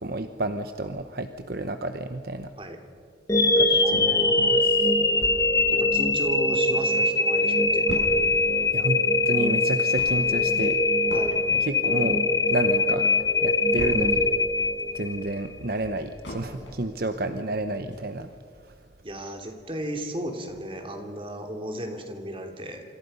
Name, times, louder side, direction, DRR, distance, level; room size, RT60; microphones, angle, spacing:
voice 1, 0.0-2.5 3.6-4.9 8.7-10.8 11.5-12.2 12.5-14.3 14.9-18.3 18.6-18.7, right 2 dB, 55° right, 8 dB, 1.0 m, -31 dB
sound 1, 3.3-15.4, left 2 dB, 15° left, 1.3 m, -22 dB
voice 2, 3.7-4.6 5.7-8.0 11.1-11.4 19.0-22.8, right 1 dB, 30° right, 4 dB, 3.1 m, -35 dB
sound 2, 5.2-6.8 7.1-7.2 7.4-14.4 14.8-17.0 17.4-17.5 17.9-18.0, equal, 85° left, 7.1 m, -39 dB
28.0 x 26.0 x 5.6 m, 2.3 s
head